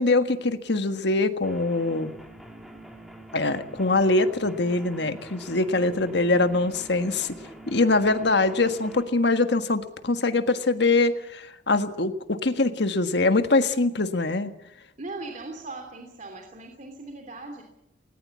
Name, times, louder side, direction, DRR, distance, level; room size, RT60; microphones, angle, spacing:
voice 1, 0.0-2.1 3.3-7.4 7.7-14.5, left 2 dB, 65° left, 9 dB, 1.6 m, -23 dB
sound 1, 1.4-9.0, right 1 dB, ahead, 3.2 m, -45 dB
voice 2, 5.8-6.3 15.0-17.6, right 2 dB, 45° right, 3 dB, 3.0 m, -39 dB
19.5 x 19.5 x 8.4 m, 0.86 s
head